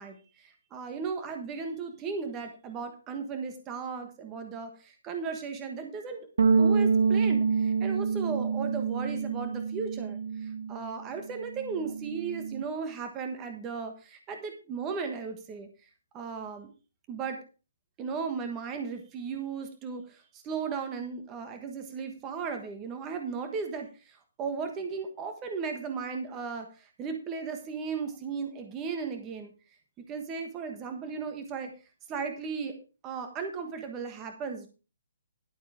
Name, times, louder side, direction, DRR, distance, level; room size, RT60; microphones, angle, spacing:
voice 1, 0.0-15.7 16.1-16.7 17.1-17.4 18.0-29.5 30.1-31.7 32.1-32.8 33.0-34.7, right 5 dB, 10° right, 6 dB, 1.3 m, -36 dB
sound 1, 6.4-10.9 11.2-12.6, right 5 dB, 60° right, 1.2 m, -27 dB
11.5 x 8.0 x 4.9 m, 0.33 s
hypercardioid pair, 180°, 0 cm